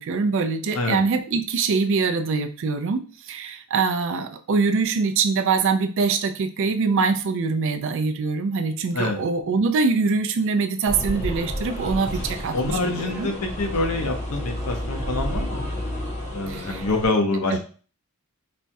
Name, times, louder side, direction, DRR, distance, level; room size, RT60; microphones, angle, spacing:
voice 1, 0.0-13.3 16.5-16.8 17.5-17.6, right 4 dB, 60° right, 8 dB, 0.4 m, -24 dB
sound 1, 10.9-17.1, equal, 35° left, 0.7 m, -30 dB
voice 2, 12.5-15.7 16.3-17.6, left 2 dB, 80° left, 3 dB, 0.7 m, -26 dB
4.2 x 2.3 x 2.6 m, 0.39 s
head